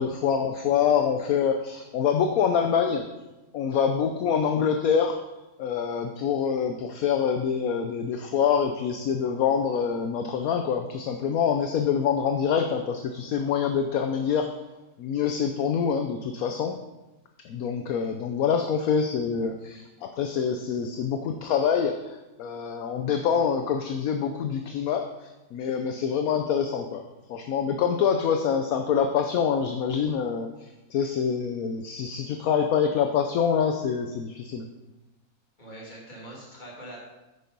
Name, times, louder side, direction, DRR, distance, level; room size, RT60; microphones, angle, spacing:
voice 1, 0.0-3.1 3.5-5.2 5.6-14.5 15.0-16.8 17.4-25.1 25.5-27.0 27.3-34.7, left 7 dB, 70° left, 5 dB, 1.1 m, -25 dB
voice 2, 35.6-37.0, right 1 dB, 30° left, -4 dB, 2.7 m, -43 dB
9.2 x 6.6 x 5.3 m, 1.0 s
omnidirectional pair, 1.6 m